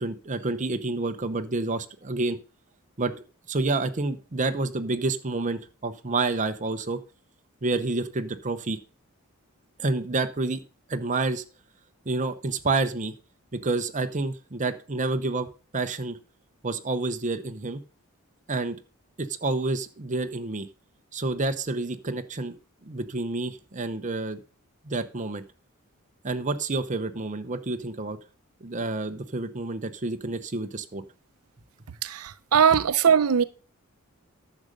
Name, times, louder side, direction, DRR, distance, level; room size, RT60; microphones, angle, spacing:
voice 1, 0.0-2.4 3.0-3.1 3.5-7.0 7.6-8.8 9.8-10.6 10.9-11.4 12.1-13.1 13.5-15.5 15.7-16.2 16.6-17.8 18.5-18.8 19.2-20.7 21.1-22.6 22.8-24.4 24.8-25.4 26.2-28.2 28.6-31.0, right 3 dB, 35° right, 0.8 m, -29 dB
voice 2, 32.0-33.4, right 7 dB, 85° right, 0.6 m, -20 dB
10.5 x 6.4 x 5.1 m
head